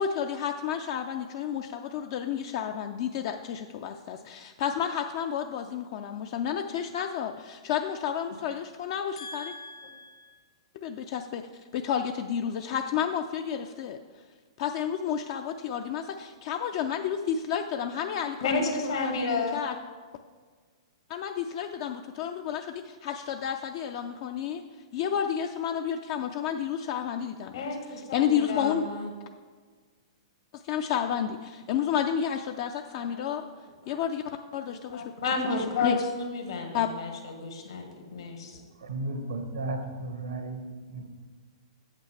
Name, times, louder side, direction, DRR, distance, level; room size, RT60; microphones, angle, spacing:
voice 1, 0.0-9.5 10.8-11.5 11.7-14.0 14.6-19.7 21.1-24.6 24.9-28.9 30.5-33.4 33.9-34.2 34.5-35.0 35.4-35.6 35.8-36.0 36.7-36.9, left 8 dB, 50° left, 6 dB, 0.4 m, -31 dB
voice 2, 9.2-10.3 18.4-19.6 27.5-29.1 32.9-33.3 33.8-34.0 34.6-38.6, left 3 dB, 75° left, 2 dB, 1.7 m, -32 dB
voice 3, 38.8-41.1, right 2 dB, 80° right, 6 dB, 1.1 m, -34 dB
8.2 x 7.9 x 3.3 m, 1.5 s
hypercardioid pair, 115°, 3 cm